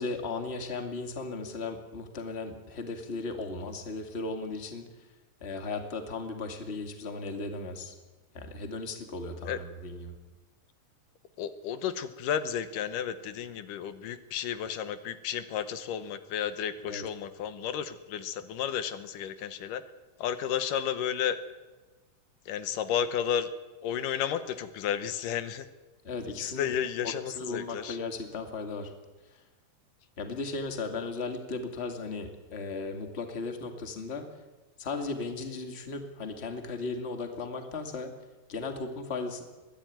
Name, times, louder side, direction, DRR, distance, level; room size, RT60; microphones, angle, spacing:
voice 1, 0.0-4.8 5.4-7.9 8.3-10.1 16.9-17.0 26.0-26.7 27.0-28.9 30.2-34.2 34.8-38.1 38.5-39.4, left 3 dB, 20° left, 5 dB, 2.0 m, -36 dB
voice 2, 11.4-19.8 20.2-21.4 22.5-23.5 23.8-25.7 26.4-28.0, left 9 dB, 80° left, 11 dB, 2.6 m, -32 dB
22.5 x 15.0 x 9.3 m, 1.2 s
omnidirectional pair, 3.8 m